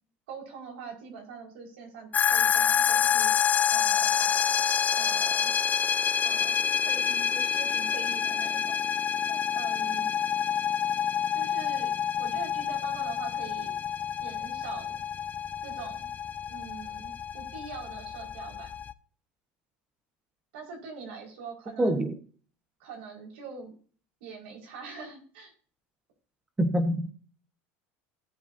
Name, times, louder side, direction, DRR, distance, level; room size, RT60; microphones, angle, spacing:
voice 1, 0.3-4.5 5.0-5.5 6.2-9.0 9.3-10.1 11.3-13.8 14.2-15.0 15.6-16.1 16.5-18.7 20.5-22.1 22.8-23.7 24.2-25.5, right 5 dB, 85° right, 5.2 m, -43 dB
sound 1, 2.1-18.9, left 8 dB, 30° left, 0.7 m, -27 dB
voice 2, 21.8-22.1 26.6-27.1, right 1 dB, 10° right, 1.3 m, -25 dB
18.5 x 8.2 x 2.8 m
supercardioid pair, 125°, 6 cm